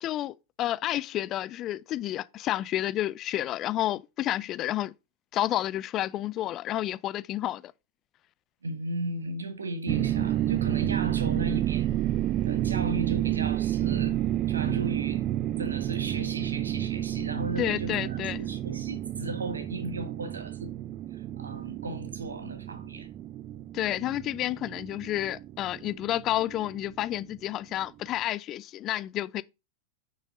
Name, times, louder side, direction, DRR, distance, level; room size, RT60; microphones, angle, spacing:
voice 1, 0.0-4.9 5.3-7.6 17.6-18.4 23.7-29.4, left 13 dB, 35° left, 0.4 m, -30 dB
voice 2, 8.6-11.9 12.4-14.2 14.5-15.2 15.6-20.7 21.1-23.1, right 2 dB, 80° right, 1.3 m, -36 dB
sound 1, 9.9-27.0, right 13 dB, 35° right, 0.3 m, -30 dB
8.7 x 6.4 x 2.6 m
figure-of-eight pair, 95°, 0 cm